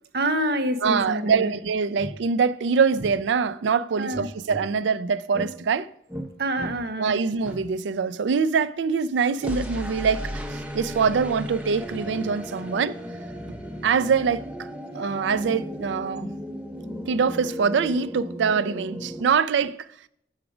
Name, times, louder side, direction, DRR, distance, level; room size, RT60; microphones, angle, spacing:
voice 1, 0.1-1.5 4.0-4.3 6.4-7.2, right 1 dB, 60° right, 0.7 m, -26 dB
voice 2, 0.8-5.9 7.0-13.0 13.8-14.4 14.9-16.3 17.1-19.9, right 5 dB, 90° right, 0.4 m, -24 dB
sound 1, 1.5-1.6 2.0-2.1 2.9-3.1 4.1-4.7 5.3-5.5 6.1-6.3 6.5-6.8 7.4-7.6 9.4-19.2, equal, 5° right, 0.7 m, -35 dB
7.2 x 4.9 x 6.0 m
head